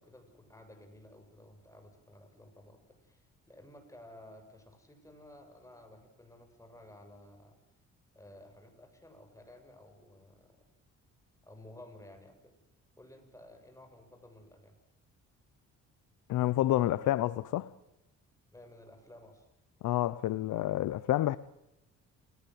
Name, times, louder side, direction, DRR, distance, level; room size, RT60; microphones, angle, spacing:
voice 1, 0.0-3.2 3.5-7.6 8.1-10.6 11.4-12.5 13.0-14.7 18.5-19.4, left 1 dB, 10° left, 7.8 m, -54 dB
voice 2, 16.3-17.7 19.8-21.4, left 14 dB, 80° left, 0.9 m, -29 dB
29.5 x 18.5 x 8.0 m
cardioid pair, 90°, 30 cm